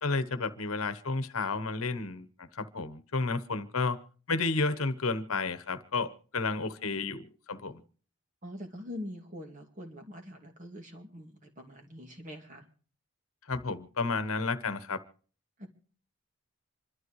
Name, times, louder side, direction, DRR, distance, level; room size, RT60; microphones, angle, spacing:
voice 1, 0.0-4.0 4.3-7.8 13.5-15.0, left 3 dB, 80° left, 1.0 m, -32 dB
voice 2, 8.4-12.7 15.6-15.7, left 1 dB, 35° right, 2.3 m, -44 dB
26.5 x 12.5 x 3.1 m
head